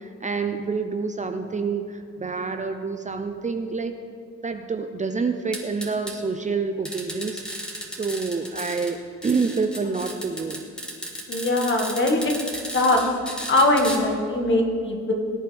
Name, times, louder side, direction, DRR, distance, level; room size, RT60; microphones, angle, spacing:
voice 1, 0.0-3.9 4.4-7.4 7.9-10.6, right 4 dB, 25° right, 7 dB, 0.7 m, -27 dB
sound 1, 5.5-6.1 6.8-8.9 9.2-14.0, equal, 5° left, 2.2 m, -34 dB
voice 2, 11.3-12.3 12.7-13.0 13.5-15.1, left 2 dB, 40° left, 1 dB, 2.0 m, -21 dB
20.0 x 8.7 x 3.5 m, 2.3 s
cardioid pair, 90°, 30 cm